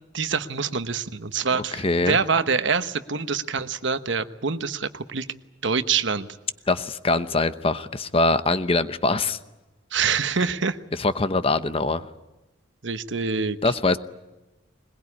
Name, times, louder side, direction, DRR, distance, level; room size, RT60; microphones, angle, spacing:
voice 1, 0.1-5.3 5.6-6.3 9.9-10.8 12.8-13.6, right 5 dB, 65° right, 11 dB, 1.1 m, -25 dB
voice 2, 1.7-2.2 6.7-9.4 11.0-12.1 13.6-14.0, left 2 dB, 30° left, 12 dB, 0.9 m, -23 dB
22.0 x 21.5 x 9.8 m, 1.1 s
head